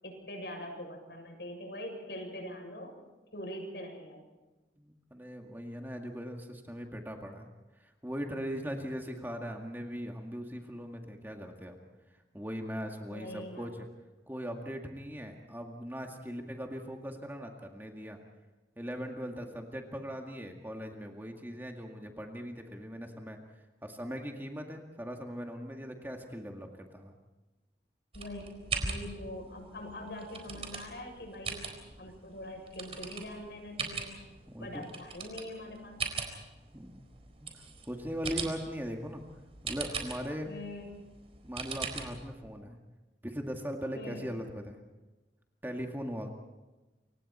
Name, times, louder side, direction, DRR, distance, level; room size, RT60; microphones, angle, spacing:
voice 1, 0.0-3.0 3.3-4.2 13.1-13.7 28.1-28.4 28.8-31.7 32.0-34.3 34.6-36.0 40.5-40.9 43.9-44.3, left 1 dB, 70° left, 3 dB, 7.4 m, -43 dB
voice 2, 4.8-7.5 7.7-11.8 12.3-13.9 14.3-18.2 18.8-23.4 23.8-27.1 34.5-34.9 36.7-37.0 37.4-39.2 39.6-40.5 41.4-42.8 43.2-44.8 45.6-46.3, equal, 10° right, 2 dB, 2.0 m, -40 dB
sound 1, 28.1-42.4, right 4 dB, 35° right, 4.1 m, -41 dB
29.0 x 25.0 x 4.4 m, 1.1 s
head